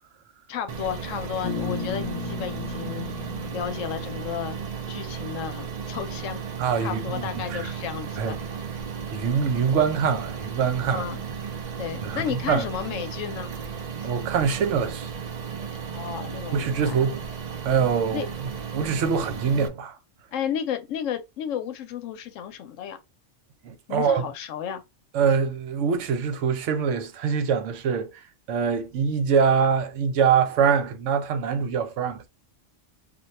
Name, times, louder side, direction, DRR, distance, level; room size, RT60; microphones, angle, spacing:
voice 1, 0.5-4.6 4.9-6.4 6.8-8.4 10.9-11.2 11.8-13.5 14.0-14.1 15.9-16.9 18.1-18.3 20.3-23.0 23.9-24.8, left 9 dB, 85° left, 1.0 m, -33 dB
sound 1, 0.7-19.7, right 6 dB, 60° right, 0.4 m, -35 dB
Bass guitar, 1.4-5.3, left 5 dB, 40° left, 0.6 m, -35 dB
voice 2, 6.6-7.7 8.2-8.4 9.1-11.0 12.0-12.6 14.0-15.1 16.5-17.2 17.6-20.0 23.6-24.3 25.1-28.2 28.5-32.3, right 6 dB, 75° right, 0.9 m, -24 dB
2.5 x 2.2 x 4.0 m
omnidirectional pair, 1.3 m